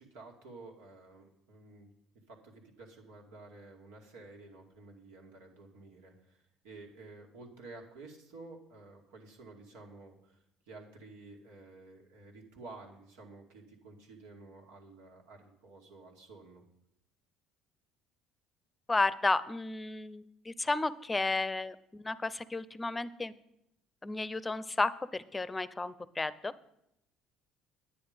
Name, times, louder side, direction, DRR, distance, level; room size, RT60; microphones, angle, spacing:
voice 1, 0.0-1.9 2.3-16.6, right 3 dB, 80° right, 1 dB, 2.3 m, -52 dB
voice 2, 18.9-23.3 24.0-26.5, left 3 dB, 20° left, 16 dB, 0.7 m, -33 dB
9.8 x 9.7 x 5.1 m, 0.79 s
hypercardioid pair, 70°, 0 cm